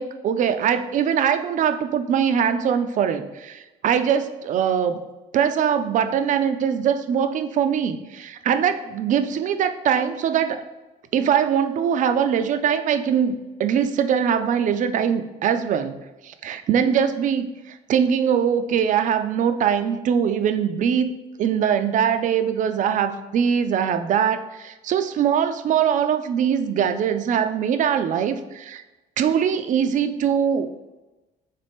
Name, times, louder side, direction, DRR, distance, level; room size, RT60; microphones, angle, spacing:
voice 1, 0.0-5.0 5.3-10.6 11.1-15.9 16.2-21.1 21.4-28.8 29.2-30.7, right 8 dB, 50° right, 9 dB, 0.4 m, -22 dB
4.1 x 3.3 x 3.5 m, 1.1 s
cardioid pair, 110°, 17 cm